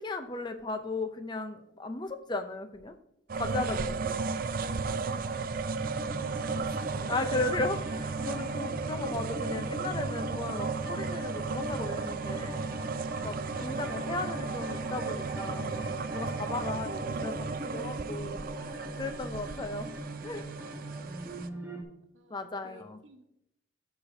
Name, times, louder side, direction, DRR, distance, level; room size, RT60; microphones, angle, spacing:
voice 1, 0.0-3.0 3.3-4.1 7.1-12.6 13.2-19.9 20.2-20.4 22.3-23.0, left 2 dB, 25° left, 8 dB, 0.5 m, -36 dB
sound 1, 3.3-21.5, right 4 dB, 45° right, 0.4 m, -35 dB
sound 2, 5.8-21.8, right 1 dB, 10° right, 1.1 m, -41 dB
voice 2, 5.8-7.2 22.1-23.3, right 1 dB, 85° right, 5 dB, 1.1 m, -53 dB
13.0 x 4.9 x 2.7 m, 0.82 s
head